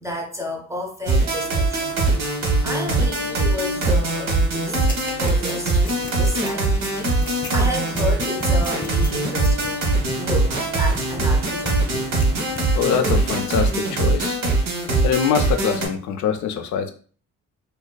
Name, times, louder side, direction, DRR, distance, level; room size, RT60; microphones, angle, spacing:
voice 1, 0.0-2.0 2.6-4.9 5.2-5.8 6.1-7.1 7.5-11.9, left 2 dB, 10° right, 2 dB, 0.4 m, -31 dB
sound 1, 1.1-15.9, right 2 dB, 65° right, 0.8 m, -22 dB
sound 2, 1.3-13.5, right 3 dB, 90° right, 0.7 m, -39 dB
sound 3, 4.9-11.4 11.6-12.3 12.5-12.6, left 3 dB, 25° left, 0.8 m, -33 dB
voice 2, 12.7-14.4 15.0-16.9, left 7 dB, 70° left, 7 dB, 0.4 m, -23 dB
2.4 x 2.3 x 2.2 m, 0.42 s
cardioid pair, 90°, 30 cm